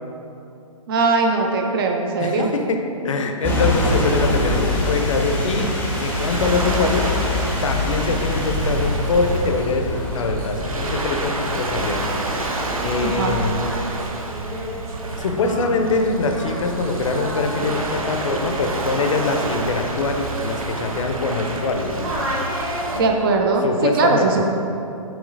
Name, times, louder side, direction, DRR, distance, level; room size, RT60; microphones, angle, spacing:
voice 1, 0.9-2.5 13.0-13.4 22.9-24.5, right 3 dB, 40° right, 2 dB, 0.5 m, -20 dB
voice 2, 2.2-2.8 3.0-5.7 6.0-7.1 7.6-12.1 12.8-13.6 15.2-22.1 23.6-24.3, left 3 dB, 65° left, 4 dB, 0.6 m, -23 dB
sound 1, 3.4-13.6, left 2 dB, 10° left, 0.6 m, -25 dB
Waves surf, 4.1-23.0, right 2 dB, 80° right, 0.6 m, -29 dB
Singing, 12.7-21.7 22.0-23.4, equal, 15° right, 1.0 m, -33 dB
6.9 x 3.0 x 2.6 m, 2.7 s
figure-of-eight pair, 130°, 18 cm